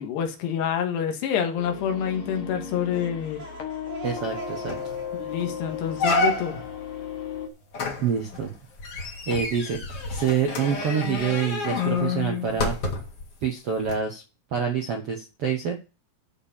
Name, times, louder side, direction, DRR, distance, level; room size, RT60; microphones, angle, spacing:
voice 1, 0.0-3.4 5.1-6.6, left 8 dB, 90° left, 3.6 m, -27 dB
sound 1, 1.6-7.5, left 8 dB, 65° left, 1.3 m, -36 dB
sound 2, 2.7-7.4, right 4 dB, 35° right, 2.1 m, -43 dB
voice 2, 4.0-4.8 8.0-8.5 9.2-9.8 10.1-12.7 13.4-14.2 14.5-15.7, right 7 dB, 90° right, 1.3 m, -26 dB
sound 3, 4.2-4.3 4.7-5.0 5.4-5.5 6.0-6.7 7.7-13.2 13.8-13.9, left 3 dB, 45° left, 2.4 m, -28 dB
13.0 x 4.5 x 7.2 m
omnidirectional pair, 4.7 m